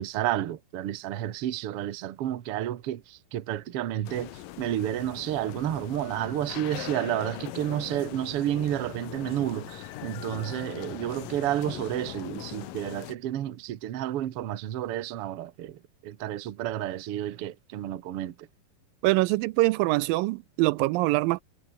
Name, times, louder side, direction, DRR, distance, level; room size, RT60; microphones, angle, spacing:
voice 1, 0.0-18.5, right 12 dB, 60° right, 1.6 m, -31 dB
sound 1, 4.0-13.1, left 14 dB, 75° left, 2.7 m, -40 dB
voice 2, 19.0-21.4, right 20 dB, 85° right, 2.2 m, -24 dB
omnidirectional pair, 4.1 m